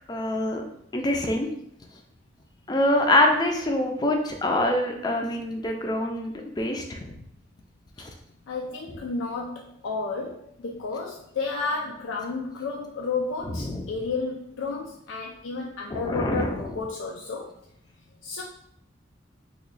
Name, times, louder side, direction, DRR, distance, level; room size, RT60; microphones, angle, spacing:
voice 1, 0.1-0.6 0.9-1.5 2.7-7.2 8.0-8.1 13.5-13.9 15.9-16.7, left 1 dB, 20° left, 3 dB, 0.4 m, -25 dB
voice 2, 8.5-17.5 18.2-18.4, left 3 dB, 85° left, -1 dB, 0.4 m, -32 dB
3.0 x 2.2 x 3.9 m, 0.74 s
head